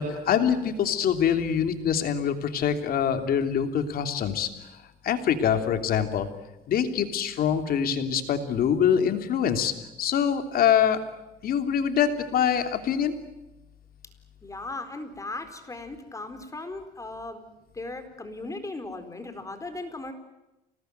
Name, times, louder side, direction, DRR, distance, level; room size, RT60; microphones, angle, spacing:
voice 1, 0.0-6.3 6.7-9.7 10.0-11.0 11.4-13.1, left 8 dB, 60° left, 7 dB, 3.1 m, -24 dB
voice 2, 14.4-17.4 17.7-20.1, left 2 dB, 20° left, 8 dB, 4.3 m, -37 dB
29.0 x 19.5 x 9.4 m, 0.96 s
cardioid pair, 110°, 17 cm